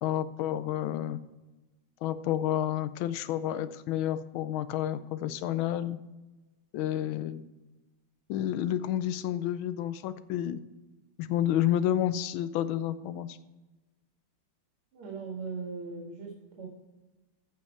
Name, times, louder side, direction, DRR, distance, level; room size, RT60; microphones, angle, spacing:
voice 1, 0.0-1.2 2.0-6.0 6.7-7.5 8.3-10.6 11.2-13.4, left 11 dB, 75° left, 14 dB, 1.4 m, -30 dB
voice 2, 14.9-16.7, right 4 dB, 85° right, -2 dB, 2.7 m, -39 dB
14.5 x 5.5 x 4.4 m, 1.1 s
omnidirectional pair, 2.3 m